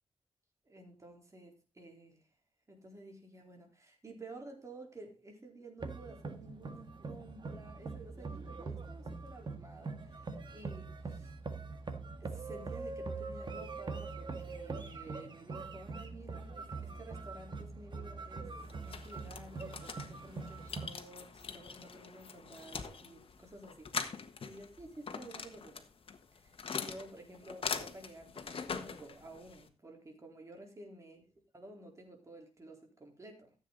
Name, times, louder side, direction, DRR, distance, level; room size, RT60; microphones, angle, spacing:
voice 1, 0.7-2.2 2.7-11.3 12.2-18.5 18.8-25.8 26.3-31.2 31.5-33.5, right 2 dB, 30° right, 2 dB, 4.0 m, -52 dB
sound 1, 5.8-20.9, right 4 dB, 50° right, 1.7 m, -43 dB
sound 2, 18.6-29.7, left 5 dB, 60° left, 1.5 m, -43 dB
14.0 x 8.2 x 4.0 m, 0.30 s
wide cardioid pair, 105°, 10 cm